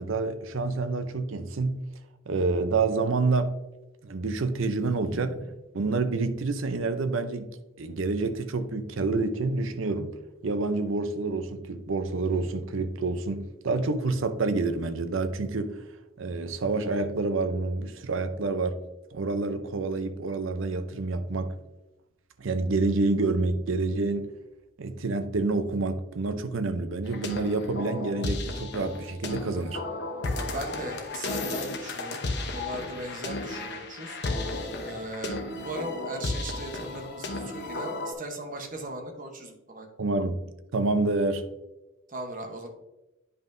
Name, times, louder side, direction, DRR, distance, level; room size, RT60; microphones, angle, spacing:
voice 1, 0.0-1.8 2.3-3.5 4.0-5.3 5.7-10.2 10.4-15.8 16.2-18.8 19.1-21.6 22.4-24.3 24.8-29.8 40.0-41.4, right 3 dB, 65° right, 0.6 m, -28 dB
voice 2, 4.8-5.4 30.4-32.2 32.5-34.2 34.8-39.9 42.1-42.7, right 2 dB, 40° right, 1.0 m, -38 dB
sound 1, 27.0-38.1, left 2 dB, 50° left, 0.9 m, -33 dB
9.7 x 5.3 x 2.6 m
head